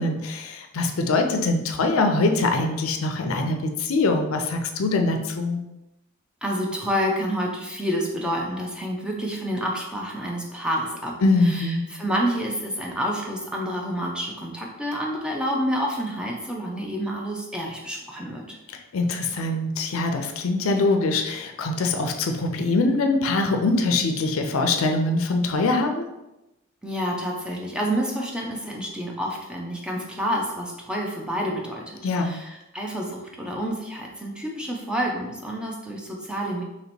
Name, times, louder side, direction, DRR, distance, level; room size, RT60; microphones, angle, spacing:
voice 1, 0.0-5.6 11.2-11.9 18.7-26.1 32.0-32.4, left 2 dB, 80° left, 5 dB, 0.5 m, -23 dB
voice 2, 6.4-11.2 11.4-18.6 26.8-36.6, equal, 5° right, -2 dB, 0.5 m, -28 dB
3.0 x 2.9 x 4.2 m, 0.96 s
head